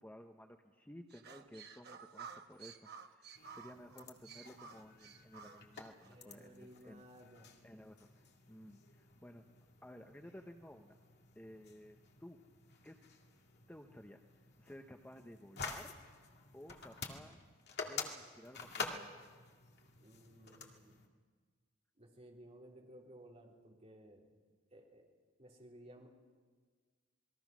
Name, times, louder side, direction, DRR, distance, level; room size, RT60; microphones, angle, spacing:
voice 1, 0.0-7.0 7.6-9.4 9.8-11.0 11.4-12.4 12.8-13.0 13.7-14.2 14.6-16.0 16.5-17.4 17.9-19.1, equal, 10° left, 4 dB, 0.9 m, -55 dB
sound 1, 1.1-6.2, right 6 dB, 50° right, 1.2 m, -53 dB
sound 2, 3.3-21.1, left 4 dB, 55° left, 2.2 m, -50 dB
voice 2, 6.1-7.5 20.0-21.0 22.0-24.3 24.7-25.1 25.4-26.1, right 1 dB, 35° right, -2 dB, 4.0 m, -57 dB
28.0 x 21.0 x 6.2 m, 1.5 s
head